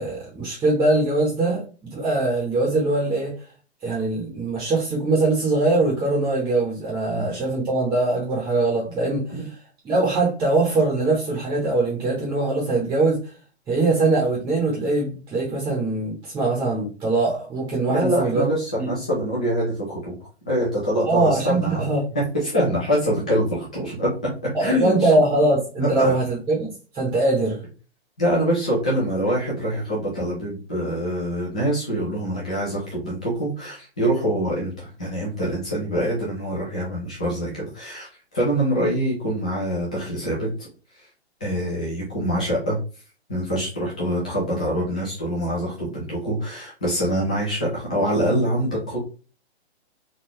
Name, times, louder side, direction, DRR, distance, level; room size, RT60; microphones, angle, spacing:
voice 1, 0.0-3.3 3.8-9.4 9.8-13.2 13.7-18.4 18.8-18.9 21.1-22.0 24.5-27.6, right 2 dB, 10° right, 0.8 m, -22 dB
voice 2, 17.9-20.2 20.5-21.8 22.1-24.1 24.4-25.1 25.8-26.2 28.2-40.7 40.9-41.1 41.4-42.8 43.3-49.0, equal, 5° left, 0.3 m, -25 dB
3.8 x 2.4 x 2.9 m
hypercardioid pair, 145°, 34 cm